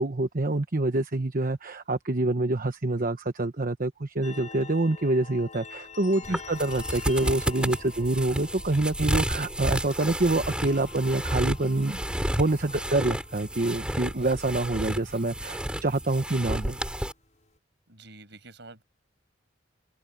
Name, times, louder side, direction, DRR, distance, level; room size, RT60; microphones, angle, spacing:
voice 1, 0.0-12.0 12.3-16.8, right 2 dB, 50° right, 1.1 m, -26 dB
sound 1, 4.2-17.6, left 5 dB, 40° left, 6.4 m, -48 dB
sound 2, 6.2-17.1, equal, 5° right, 3.5 m, -32 dB
voice 2, 17.9-18.8, right 3 dB, 65° right, 6.6 m, -48 dB
head